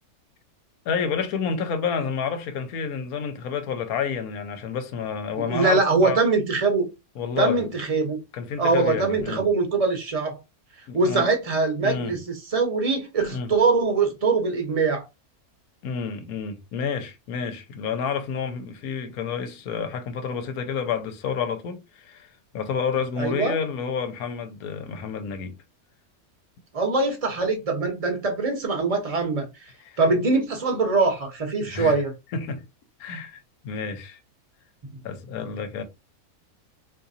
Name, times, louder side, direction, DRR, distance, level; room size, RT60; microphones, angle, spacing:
voice 1, 0.8-6.2 7.2-7.6 8.3-9.4 10.9-11.3 11.8-12.1 13.3-13.5 15.8-25.5 29.8-30.0 31.6-32.0 32.3-32.6 33.0-34.2 35.0-35.8, left 6 dB, 80° left, 1.1 m, -29 dB
voice 2, 5.4-6.9 7.4-8.2 8.6-10.4 10.9-15.1 23.2-23.6 26.7-29.5 30.0-32.1, right 3 dB, 30° right, 0.8 m, -23 dB
3.7 x 2.7 x 2.7 m
omnidirectional pair, 1.6 m